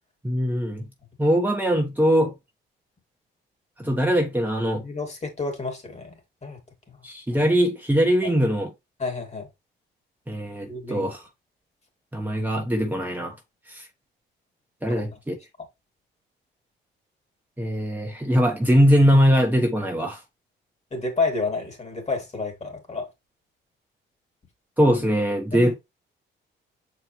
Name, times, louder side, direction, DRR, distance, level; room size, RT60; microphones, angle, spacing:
voice 1, 0.2-0.9 1.2-2.3 3.8-4.8 7.0-8.7 10.3-11.2 12.1-13.3 13.7-13.9 14.8-15.4 17.6-20.2 24.8-25.7, equal, 10° right, 1.3 m, -21 dB
voice 2, 4.8-6.2 6.4-6.6 6.9-7.0 8.2-8.3 9.0-9.5 10.7-11.1 14.9-15.2 20.9-23.1 25.5-25.8, left 3 dB, 35° left, 3.0 m, -30 dB
6.8 x 4.6 x 3.3 m
cardioid pair, 90°, 20 cm